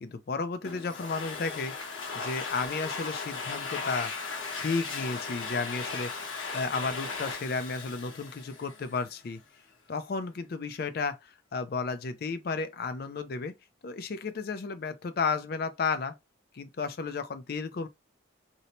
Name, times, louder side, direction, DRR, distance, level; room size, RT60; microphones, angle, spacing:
voice 1, 0.0-1.7 2.1-4.1 4.6-6.1 6.5-9.4 9.9-13.6 13.8-16.1 16.5-17.9, left 4 dB, 50° left, 0.4 m, -33 dB
Domestic sounds home sounds, 0.6-9.1, left 4 dB, 80° left, 0.9 m, -37 dB
2.7 x 2.1 x 2.9 m
head